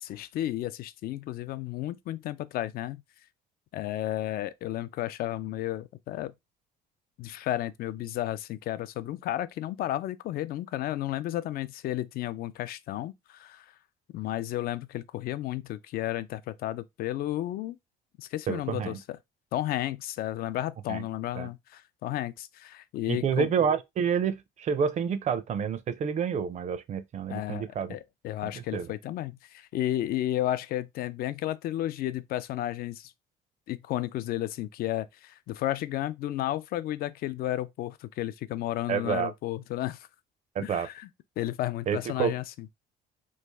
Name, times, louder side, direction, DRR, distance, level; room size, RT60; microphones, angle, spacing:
voice 1, 0.0-3.0 3.7-6.3 7.2-13.7 14.1-17.8 18.2-19.2 19.5-23.5 27.3-33.1 33.7-40.1 40.6-41.1 41.4-42.4, left 14 dB, 65° left, 0.4 m, -33 dB
voice 2, 18.5-19.0 20.9-21.0 21.4-21.5 23.1-27.9 28.4-28.9 38.9-39.3 40.6-40.9 41.9-42.3, right 7 dB, 45° right, 0.4 m, -29 dB
3.1 x 2.4 x 3.4 m
cardioid pair, 110°, 17 cm